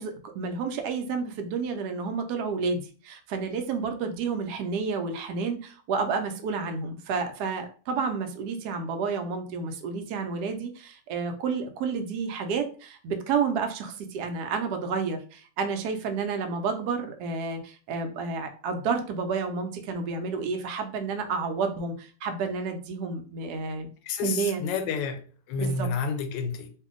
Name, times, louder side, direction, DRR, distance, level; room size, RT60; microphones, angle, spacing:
voice 1, 0.0-23.9 24.2-24.6 25.6-25.9, right 5 dB, 70° right, 1.1 m, -30 dB
voice 2, 24.1-26.7, left 5 dB, 85° left, 1.3 m, -30 dB
2.7 x 2.6 x 3.6 m
omnidirectional pair, 1.9 m